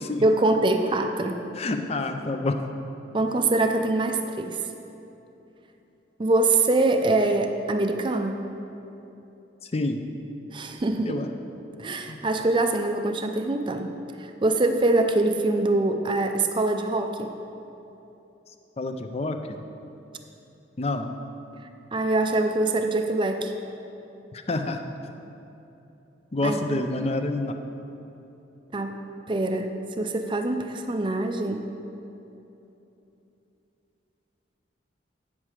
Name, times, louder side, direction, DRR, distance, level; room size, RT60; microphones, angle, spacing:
voice 1, 0.2-1.4 3.1-4.6 6.2-8.4 10.5-11.2 11.8-13.9 14.2-17.3 21.9-23.5 26.4-26.8 28.7-28.9 29.3-31.7, right 2 dB, 25° right, 6 dB, 0.4 m, -24 dB
voice 2, 1.6-2.6 9.6-10.0 11.1-11.3 12.1-12.2 18.8-19.6 20.8-21.1 24.3-24.8 26.3-27.6, left 2 dB, 30° left, 7 dB, 0.5 m, -28 dB
8.8 x 7.3 x 4.8 m, 3.0 s
head